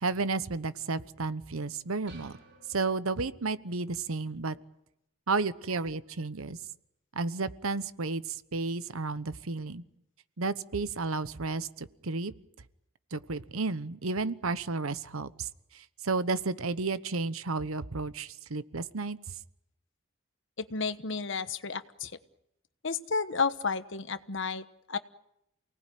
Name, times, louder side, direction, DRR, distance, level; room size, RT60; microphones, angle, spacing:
voice 1, 0.0-2.3 2.7-4.5 5.3-6.6 7.1-8.2 8.5-9.8 10.4-12.3 13.1-15.5 16.0-19.2, right 3 dB, 80° right, 14 dB, 1.0 m, -32 dB
sound 1, 2.1-3.7, right 3 dB, 55° right, 5.4 m, -55 dB
voice 2, 20.6-22.1 22.8-25.0, left 5 dB, 60° left, 12 dB, 1.2 m, -32 dB
29.0 x 19.0 x 9.3 m, 0.84 s
head